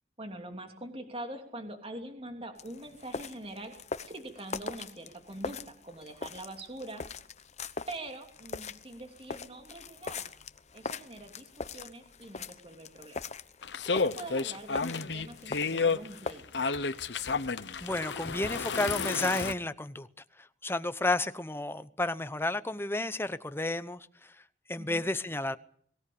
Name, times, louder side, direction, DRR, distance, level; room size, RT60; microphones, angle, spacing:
voice 1, 0.2-3.7 4.1-7.0 7.9-10.3 10.7-13.2 13.8-16.4 24.8-25.0, right 1 dB, 30° right, 2.9 m, -44 dB
sound 1, 2.6-16.3, left 4 dB, 40° left, 0.9 m, -42 dB
sound 2, 13.6-19.5, left 4 dB, 70° left, 1.0 m, -31 dB
voice 2, 17.8-20.1 20.4-24.4 24.7-25.6, left 2 dB, 15° left, 0.9 m, -32 dB
22.5 x 17.0 x 8.6 m
head